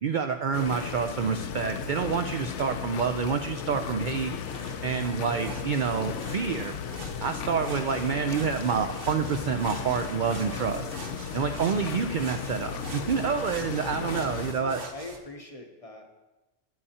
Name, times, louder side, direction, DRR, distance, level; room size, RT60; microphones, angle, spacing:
voice 1, 0.0-4.3 4.8-6.7 7.2-10.9 11.3-14.8, right 6 dB, 70° right, 7 dB, 0.4 m, -28 dB
sound 1, 0.5-14.5, left 7 dB, 70° left, 0.9 m, -35 dB
sound 2, 4.4-15.2, right 3 dB, 45° right, 1.1 m, -45 dB
voice 2, 5.3-5.8 7.5-7.9 14.1-16.1, left 2 dB, 35° left, 3 dB, 0.7 m, -43 dB
12.5 x 8.6 x 2.8 m, 1.1 s
omnidirectional pair, 1.3 m